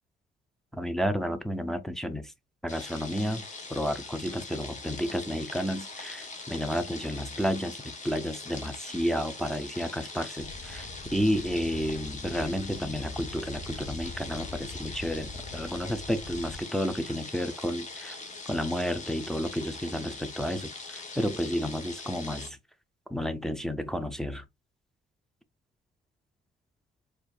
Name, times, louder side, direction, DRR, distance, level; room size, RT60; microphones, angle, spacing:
voice 1, 0.7-2.3 2.6-3.4 3.7-18.2 18.5-22.6 23.1-24.4, equal, ahead, 0.5 m, -31 dB
sound 1, 2.7-22.5, left 3 dB, 40° left, 1.1 m, -42 dB
sound 2, 10.4-16.6, left 3 dB, 55° left, 0.7 m, -43 dB
4.4 x 2.5 x 2.2 m
cardioid pair, 90°, 20 cm